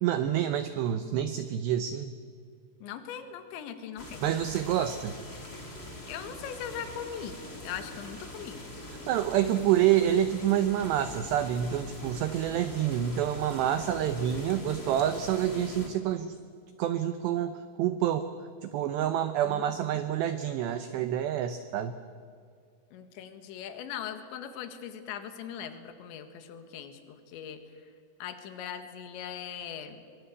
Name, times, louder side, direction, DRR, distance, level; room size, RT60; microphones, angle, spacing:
voice 1, 0.0-2.1 4.2-5.2 9.1-16.3 16.8-18.3 18.6-21.9, right 11 dB, 80° right, 10 dB, 2.5 m, -28 dB
voice 2, 2.8-4.3 6.1-8.7 19.4-20.0 22.9-27.6 28.2-30.0, left 8 dB, 65° left, 9 dB, 3.7 m, -40 dB
sound 1, 4.0-15.9, left 1 dB, 20° left, 1.7 m, -43 dB
24.5 x 24.0 x 8.4 m, 2.2 s
omnidirectional pair, 6.0 m